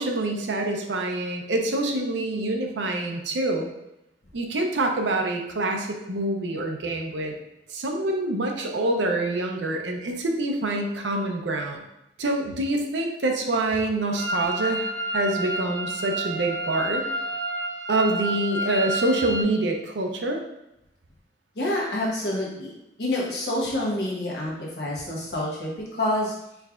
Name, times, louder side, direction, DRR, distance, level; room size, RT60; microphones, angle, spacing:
voice 1, 0.0-3.7 4.3-7.4 7.7-11.8 12.2-17.0 17.9-20.4, right 2 dB, 90° right, 3 dB, 0.6 m, -26 dB
sound 1, 14.2-19.4, right 1 dB, ahead, 0.7 m, -30 dB
voice 2, 21.5-22.7 23.0-26.3, left 1 dB, 65° left, -4 dB, 1.1 m, -27 dB
4.6 x 3.3 x 2.4 m, 0.87 s
head